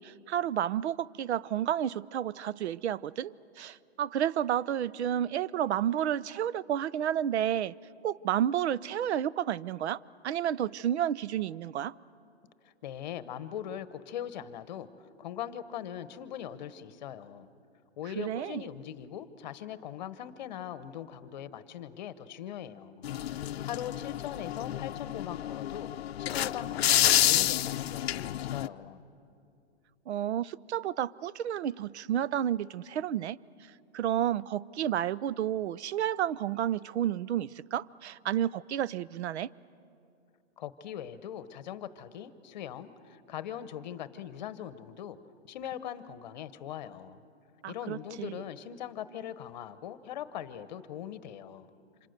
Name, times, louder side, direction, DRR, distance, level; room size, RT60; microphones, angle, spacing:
voice 1, 0.0-7.7 8.0-10.0 10.2-11.9 18.2-18.6 30.1-33.4 33.9-39.5 47.6-48.4, right 10 dB, 80° right, 0.6 m, -31 dB
voice 2, 12.6-14.9 15.2-17.5 18.0-25.9 26.2-29.0 40.6-45.2 45.5-47.2 47.7-51.7, left 10 dB, 40° left, 1.0 m, -41 dB
sound 1, 23.0-28.7, left 12 dB, 70° left, 0.6 m, -29 dB
28.5 x 26.5 x 6.6 m
hypercardioid pair, 170°, 33 cm